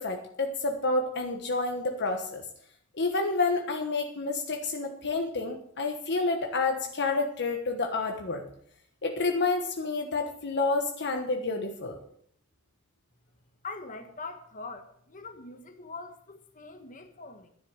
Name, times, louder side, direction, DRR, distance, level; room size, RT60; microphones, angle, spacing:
voice 1, 0.0-2.4 3.0-8.4 9.0-12.0, left 3 dB, 50° left, 3 dB, 1.3 m, -29 dB
voice 2, 13.6-17.5, left 3 dB, 35° left, 6 dB, 1.6 m, -43 dB
11.5 x 10.5 x 6.5 m, 0.67 s
head